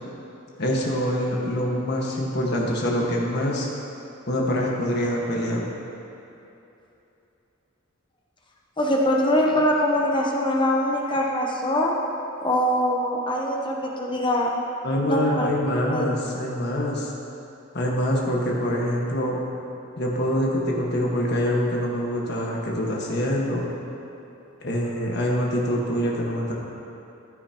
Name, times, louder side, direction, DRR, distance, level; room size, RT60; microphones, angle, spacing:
voice 1, 0.6-3.7 4.3-5.6 14.8-17.1 17.7-19.4 20.0-23.7 24.6-26.5, equal, 50° left, -2 dB, 1.6 m, -25 dB
voice 2, 8.8-11.9 12.4-14.5 15.0-15.5 15.9-16.1, left 1 dB, 25° left, -1 dB, 0.9 m, -23 dB
15.5 x 9.4 x 3.0 m, 2.9 s
head